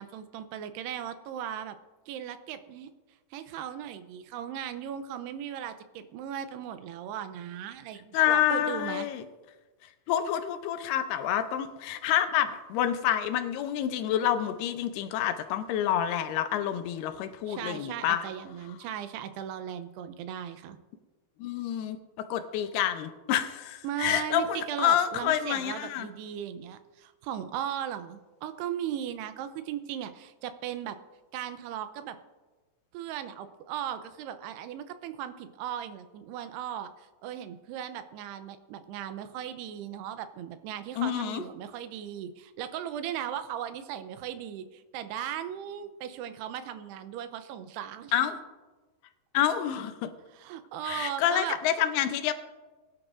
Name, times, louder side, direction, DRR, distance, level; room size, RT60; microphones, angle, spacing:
voice 1, 0.0-1.8 2.1-2.9 3.3-9.1 17.5-20.8 23.8-31.0 31.3-32.2 32.9-48.3 50.3-51.6, right 10 dB, 85° right, 10 dB, 2.7 m, -37 dB
voice 2, 8.1-9.2 10.1-18.3 21.4-26.1 41.0-41.4 48.1-48.4 49.3-50.1 50.8-52.3, left 10 dB, 80° left, 9 dB, 2.6 m, -28 dB
21.5 x 11.0 x 2.5 m, 1.2 s
omnidirectional pair, 4.7 m